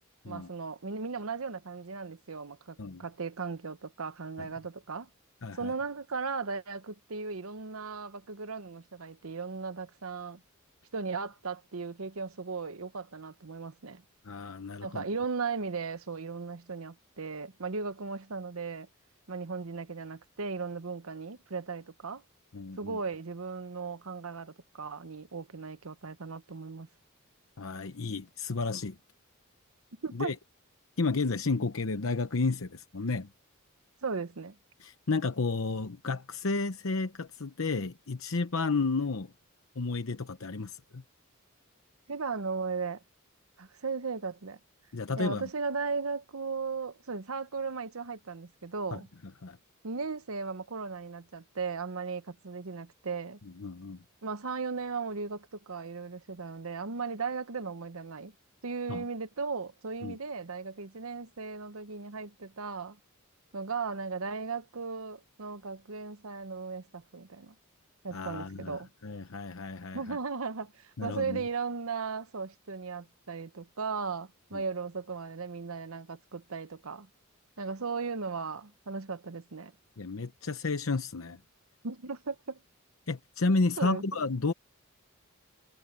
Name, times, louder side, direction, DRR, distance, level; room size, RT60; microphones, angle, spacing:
voice 1, 0.3-5.1 5.6-10.4 10.9-14.0 14.8-18.9 19.3-22.2 22.8-26.9 30.0-30.3 34.0-34.5 42.1-43.0 43.6-44.6 45.2-49.1 49.8-53.4 54.2-58.3 58.6-63.0 63.5-67.5 68.0-68.9 69.9-77.1 77.6-79.7 81.8-82.6 83.8-84.0, right 4 dB, 75° right, 1.0 m, -36 dB
voice 2, 5.4-5.7 14.2-15.0 22.5-23.0 27.6-29.0 30.1-30.3 31.0-33.3 34.8-39.3 39.8-41.0 44.9-45.5 48.9-49.0 49.4-49.6 53.6-54.0 58.9-59.0 60.0-60.2 68.1-70.2 71.0-71.4 74.5-74.6 80.0-81.4 83.1-84.5, left 3 dB, 70° left, 0.9 m, -32 dB
head